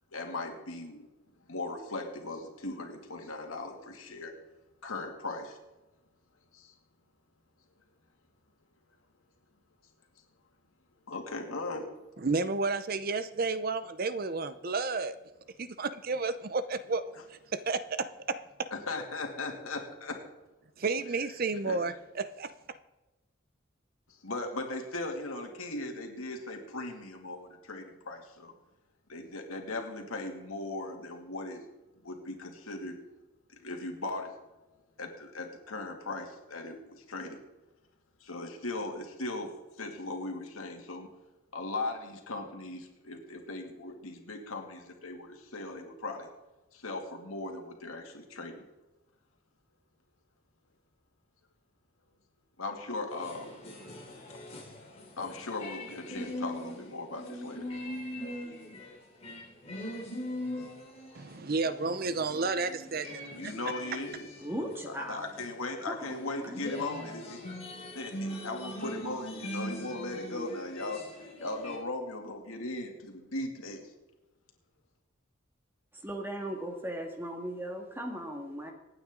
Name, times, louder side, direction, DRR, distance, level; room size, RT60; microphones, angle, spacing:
voice 1, 0.1-1.1 1.5-4.3 4.8-5.6 6.5-6.7 11.1-11.9 18.7-20.2 21.7-21.8 24.1-28.5 29.1-31.6 32.0-33.0 33.5-34.3 35.0-37.4 38.2-39.5 39.8-41.1 41.5-46.3 46.7-48.6 52.6-53.5 55.2-57.7 63.3-64.3 64.8-67.4 67.9-71.0 71.4-73.9, left 2 dB, 85° left, 3 dB, 2.5 m, -38 dB
voice 2, 12.2-15.1 15.6-18.7 20.8-22.5 61.1-63.5, right 3 dB, 45° right, 13 dB, 0.6 m, -32 dB
sound 1, 53.1-58.9 59.2-71.8, left 1 dB, 30° left, 3.1 m, -41 dB
voice 3, 64.4-65.2 65.9-66.6 75.9-78.7, right 1 dB, 10° right, 3 dB, 1.8 m, -38 dB
26.0 x 9.1 x 3.8 m, 1.1 s
head